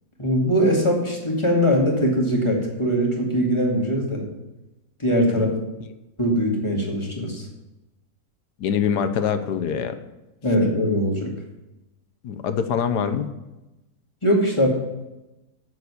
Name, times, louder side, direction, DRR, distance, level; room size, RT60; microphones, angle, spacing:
voice 1, 0.2-4.2 5.0-5.5 6.2-7.5 10.4-11.3 14.2-14.7, equal, 15° left, -1 dB, 2.2 m, -21 dB
voice 2, 8.6-9.9 12.2-13.3, left 7 dB, 65° left, 10 dB, 1.3 m, -24 dB
8.1 x 7.2 x 8.2 m, 0.98 s
omnidirectional pair, 2.0 m